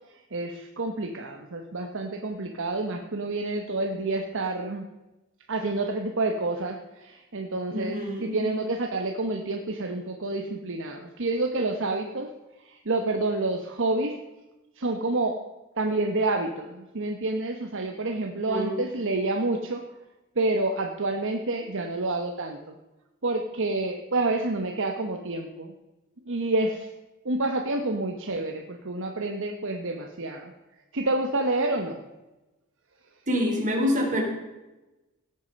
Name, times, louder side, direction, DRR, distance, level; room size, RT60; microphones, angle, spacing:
voice 1, 0.3-4.8 5.5-12.3 12.6-14.1 14.8-15.4 15.8-19.8 20.4-22.7 23.2-25.7 26.3-26.9 27.2-30.5 30.9-32.0, right 2 dB, 60° right, 4 dB, 1.1 m, -28 dB
voice 2, 7.7-8.4 18.5-18.8 33.3-34.2, equal, 35° right, 0 dB, 3.7 m, -26 dB
16.5 x 8.7 x 5.3 m, 1.0 s
head